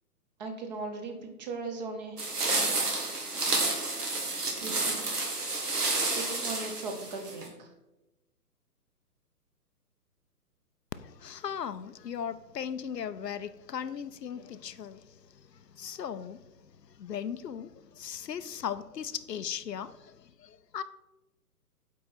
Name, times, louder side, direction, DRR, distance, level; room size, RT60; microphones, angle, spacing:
voice 1, 0.4-3.1 4.4-5.1 6.1-7.7, right 3 dB, 30° right, 5 dB, 0.8 m, -39 dB
sound 1, 2.2-7.5, right 2 dB, 75° right, 2.0 m, -30 dB
voice 2, 11.0-15.0 15.7-16.4 17.0-17.7 18.0-20.1 20.4-20.8, left 8 dB, 90° left, 12 dB, 0.6 m, -37 dB
8.3 x 3.8 x 4.2 m, 0.98 s
figure-of-eight pair, 135°, 47 cm